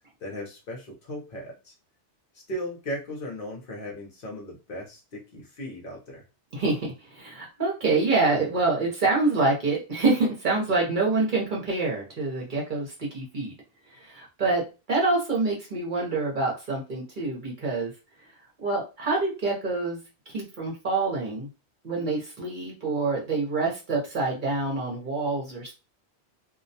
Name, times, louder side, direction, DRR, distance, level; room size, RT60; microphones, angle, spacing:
voice 1, 0.2-1.7 2.3-6.2, equal, 55° left, -2 dB, 0.8 m, -37 dB
voice 2, 6.5-13.5 13.9-14.6 14.9-17.9 18.6-20.0 20.3-21.5 21.8-25.7, right 3 dB, 50° right, -2 dB, 0.8 m, -26 dB
2.3 x 2.1 x 2.6 m, 0.30 s
omnidirectional pair, 1.2 m